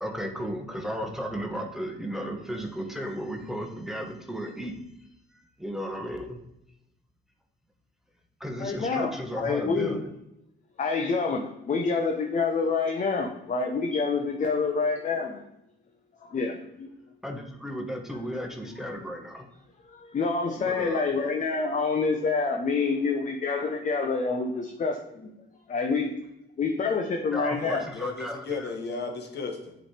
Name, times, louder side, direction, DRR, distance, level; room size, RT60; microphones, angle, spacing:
voice 1, 0.0-4.7 5.6-6.4 8.4-10.1 17.2-19.4 20.6-21.1 27.3-28.7, equal, ahead, 1.1 m, -34 dB
voice 2, 8.6-10.0 10.8-15.4 16.2-17.0 19.9-25.3 25.7-26.2 26.6-27.9, left 4 dB, 40° left, 0.7 m, -27 dB
voice 3, 27.6-29.7, left 4 dB, 60° left, 1.3 m, -35 dB
7.8 x 3.3 x 4.4 m
cardioid pair, 90°, 20 cm